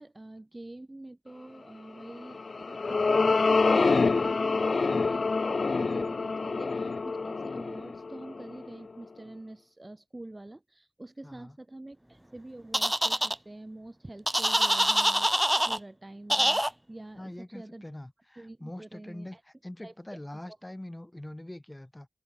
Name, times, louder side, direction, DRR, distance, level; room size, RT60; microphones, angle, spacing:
voice 1, 0.0-17.9 18.4-19.4 19.8-20.6, right 2 dB, 30° right, 3.7 m, -46 dB
sound 1, 2.2-8.8, left 4 dB, 85° left, 0.5 m, -26 dB
voice 2, 11.2-11.6 17.2-19.4 19.6-22.1, left 1 dB, 20° left, 2.1 m, -43 dB
sound 2, 12.7-13.3 14.3-15.8 16.3-16.7, right 1 dB, 10° right, 0.5 m, -25 dB
open air
wide cardioid pair, 70°, 0 cm